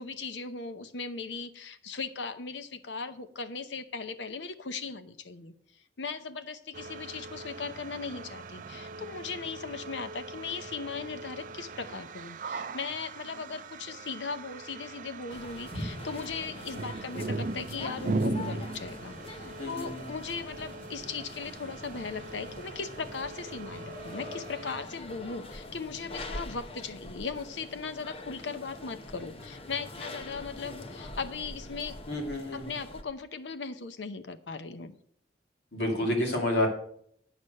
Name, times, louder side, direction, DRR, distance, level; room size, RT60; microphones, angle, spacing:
voice 1, 0.0-5.5 6.0-32.0 32.5-34.9, left 4 dB, 85° left, 11 dB, 0.8 m, -38 dB
sound 1, 6.7-24.8, right 3 dB, 45° right, 0.4 m, -39 dB
sound 2, 15.3-33.0, left 2 dB, 30° left, 0.8 m, -44 dB
voice 2, 19.6-20.0 32.1-32.6 35.7-36.7, left 1 dB, 70° left, 1 dB, 2.5 m, -29 dB
9.1 x 6.5 x 6.5 m, 0.65 s
head